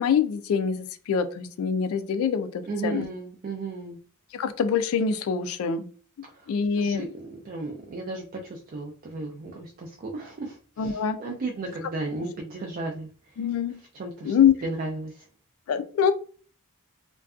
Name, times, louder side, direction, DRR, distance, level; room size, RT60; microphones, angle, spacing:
voice 1, 0.0-3.1 4.3-5.9 6.5-7.0 10.8-11.2 13.4-13.8 14.2-14.5 15.7-16.1, left 7 dB, 70° left, 10 dB, 0.3 m, -24 dB
voice 2, 2.7-4.0 6.4-13.1 13.9-14.3 14.6-15.2, right 3 dB, 40° right, 0 dB, 0.4 m, -34 dB
2.5 x 2.2 x 2.3 m, 0.42 s
head